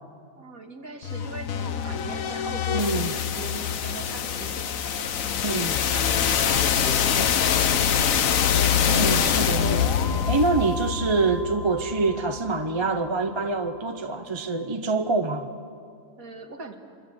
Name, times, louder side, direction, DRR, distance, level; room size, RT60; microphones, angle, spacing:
voice 1, 0.4-5.6 5.9-7.6 16.2-16.8, right 3 dB, 70° right, 2.4 m, -40 dB
sound 1, 1.0-12.9, left 8 dB, 65° left, 1.3 m, -24 dB
voice 2, 2.7-3.1 5.4-5.8 8.8-15.5, right 3 dB, 25° right, 0.7 m, -26 dB
25.0 x 23.5 x 7.8 m
omnidirectional pair, 1.5 m